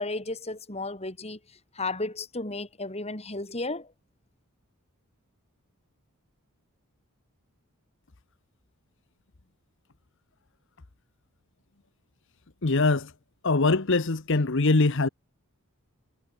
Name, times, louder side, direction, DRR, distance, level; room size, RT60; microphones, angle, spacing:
voice 1, 0.0-1.4 1.8-3.9, left 2 dB, 30° left, 3.8 m, -33 dB
voice 2, 12.6-13.1 13.4-15.1, left 3 dB, 60° left, 1.1 m, -22 dB
head